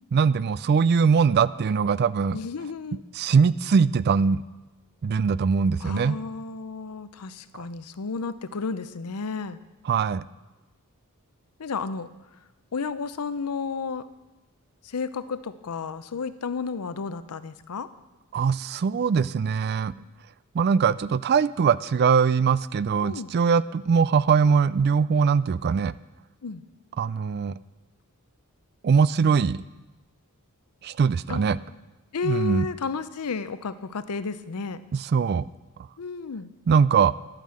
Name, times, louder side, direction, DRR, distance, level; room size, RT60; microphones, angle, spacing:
voice 1, 0.1-2.4 3.1-4.4 5.0-6.2 9.9-10.2 18.3-19.9 20.5-25.9 27.0-27.5 28.8-29.6 30.8-31.6 32.2-32.7 34.9-35.5 36.7-37.1, right 6 dB, 45° right, 18 dB, 0.3 m, -21 dB
voice 2, 2.3-3.0 5.8-9.6 11.6-12.1 12.7-14.0 14.8-17.9 23.0-23.3 26.4-26.6 31.3-31.4 32.1-34.8 36.0-36.5, left 4 dB, 85° left, 13 dB, 0.6 m, -32 dB
11.5 x 9.0 x 7.5 m, 1.1 s
head